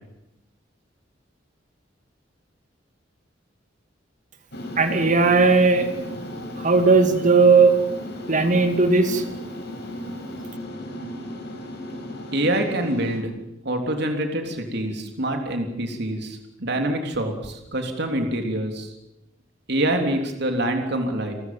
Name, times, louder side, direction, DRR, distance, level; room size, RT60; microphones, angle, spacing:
sound 1, 4.5-13.2, left 1 dB, 60° left, 5.8 m, -35 dB
voice 1, 4.8-5.9 6.6-7.8 8.3-9.2, right 4 dB, 40° right, 7 dB, 2.5 m, -17 dB
voice 2, 12.3-13.3 13.6-18.9 19.7-21.3, right 1 dB, 60° right, 4 dB, 3.4 m, -25 dB
30.0 x 13.5 x 9.2 m, 0.91 s
head